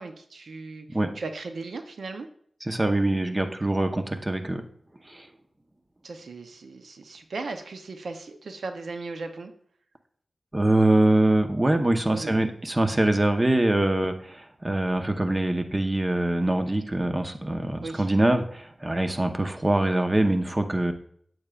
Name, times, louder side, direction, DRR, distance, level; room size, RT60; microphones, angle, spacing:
voice 1, 0.0-0.9 1.1-2.3 6.0-9.5 12.1-12.4 17.8-18.1, right 3 dB, 90° right, 6 dB, 0.6 m, -37 dB
voice 2, 2.6-4.6 5.1-5.3 10.5-20.9, right 1 dB, 30° right, 6 dB, 0.9 m, -24 dB
8.7 x 8.0 x 2.4 m, 0.62 s
cardioid pair, 55°, 0 cm